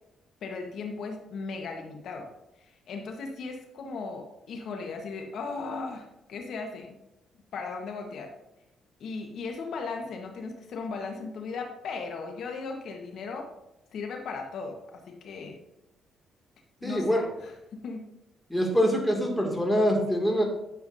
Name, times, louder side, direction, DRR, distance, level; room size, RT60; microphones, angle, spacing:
voice 1, 0.4-2.3 2.6-7.0 7.5-8.3 9.0-13.5 13.9-14.8 15.1-15.6 16.8-17.5 17.8-18.0, left 4 dB, 70° left, 3 dB, 1.2 m, -37 dB
voice 2, 16.8-17.2 18.5-20.4, equal, 5° left, 0 dB, 2.3 m, -24 dB
10.0 x 7.2 x 2.7 m, 0.91 s
cardioid pair, 90°, 0 cm